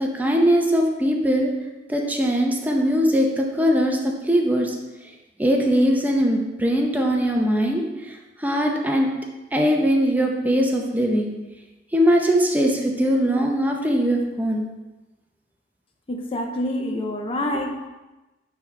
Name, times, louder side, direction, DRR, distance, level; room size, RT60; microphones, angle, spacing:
voice 1, 0.0-1.5 1.9-4.7 5.4-7.8 8.1-8.2 8.4-9.1 9.5-11.3 11.9-14.6, equal, 10° right, 1 dB, 0.7 m, -21 dB
voice 2, 16.1-17.9, left 1 dB, 35° left, 3 dB, 0.5 m, -27 dB
8.9 x 3.4 x 3.6 m, 1.1 s
head